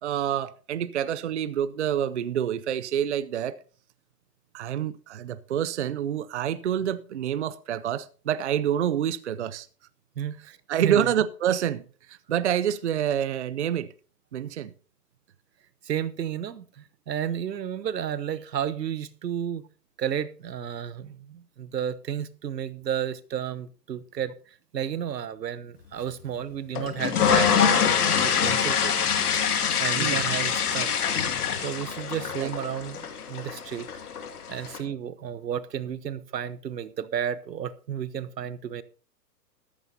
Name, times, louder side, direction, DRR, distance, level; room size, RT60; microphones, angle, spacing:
voice 1, 0.0-3.6 4.5-9.7 10.7-13.9 14.3-14.7 30.0-30.2 32.4-32.5, right 9 dB, 45° right, 0.5 m, -27 dB
voice 2, 10.2-11.1 15.8-19.7 20.0-24.3 24.7-27.5 28.2-28.9 29.8-31.0 31.6-33.9 34.5-38.8, right 9 dB, 85° right, 1.1 m, -32 dB
sound 1, 26.8-34.8, left 7 dB, 65° left, 2.4 m, -25 dB
14.0 x 13.0 x 2.8 m
hypercardioid pair, 160°, 48 cm